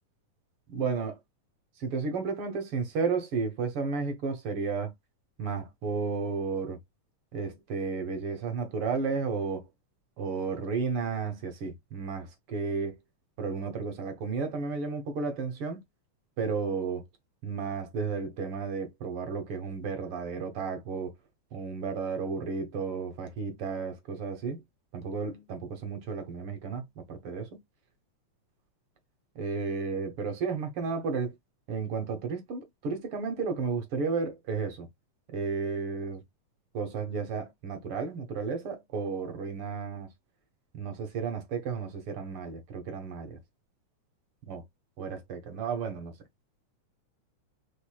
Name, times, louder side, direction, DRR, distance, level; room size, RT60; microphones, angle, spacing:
voice 1, 0.7-1.2 1.8-4.9 5.4-6.8 7.3-9.7 10.2-13.0 13.4-15.8 16.4-17.0 17.4-21.1 21.5-24.6 24.9-27.6 29.4-31.3 31.7-34.9 35.3-36.2 36.7-40.1 40.7-43.4 44.5-44.7 45.0-46.1, right 5 dB, 55° right, 1.8 m, -33 dB
5.3 x 4.2 x 2.2 m
omnidirectional pair, 3.6 m